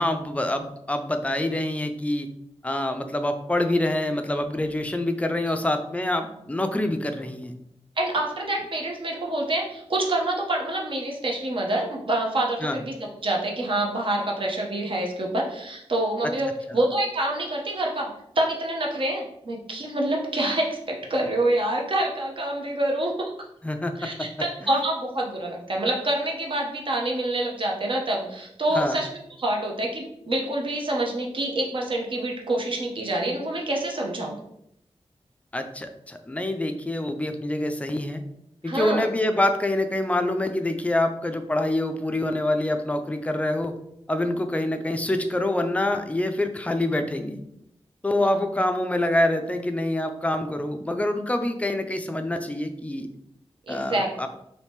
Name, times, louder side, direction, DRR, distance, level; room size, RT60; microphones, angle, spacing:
voice 1, 0.0-2.3 2.6-7.5 12.6-12.8 23.6-24.3 28.7-29.0 35.5-38.2 38.6-43.8 44.1-47.4 48.0-53.1 53.7-54.3, left 1 dB, 15° left, 6 dB, 0.3 m, -26 dB
voice 2, 8.0-18.1 18.4-23.3 24.0-29.1 29.4-34.4 38.6-39.1 48.2-48.5 53.7-54.1, right 1 dB, 55° right, -1 dB, 0.7 m, -27 dB
2.8 x 2.7 x 3.5 m, 0.78 s
wide cardioid pair, 100°, 11 cm